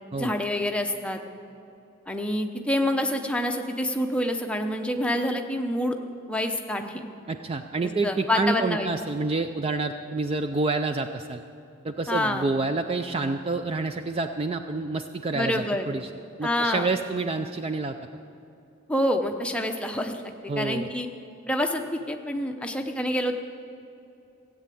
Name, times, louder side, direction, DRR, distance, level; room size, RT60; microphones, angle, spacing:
voice 1, 0.2-1.2 2.1-6.0 6.3-7.1 7.8-8.9 12.1-12.5 15.3-15.9 16.4-16.9 18.9-20.2 20.6-21.1 21.5-23.4, left 1 dB, 5° left, 4 dB, 0.7 m, -27 dB
voice 2, 7.3-11.4 11.8-16.1 16.4-18.0 20.5-20.9, right 3 dB, 25° right, 7 dB, 0.3 m, -28 dB
15.5 x 8.4 x 8.3 m, 2.8 s
head